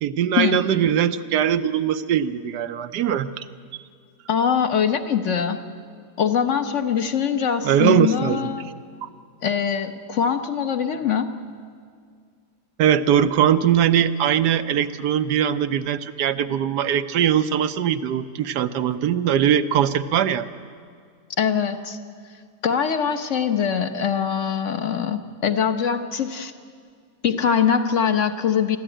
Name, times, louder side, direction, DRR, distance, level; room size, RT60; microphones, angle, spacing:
voice 1, 0.0-3.5 7.6-8.5 9.0-9.1 12.8-20.5, right 9 dB, 75° right, 11 dB, 1.3 m, -21 dB
voice 2, 4.3-5.6 6.2-8.7 9.4-11.3 21.4-22.0 22.6-26.5 27.2-28.8, left 7 dB, 50° left, 8 dB, 1.2 m, -22 dB
22.5 x 14.0 x 9.0 m, 2.1 s
omnidirectional pair, 1.8 m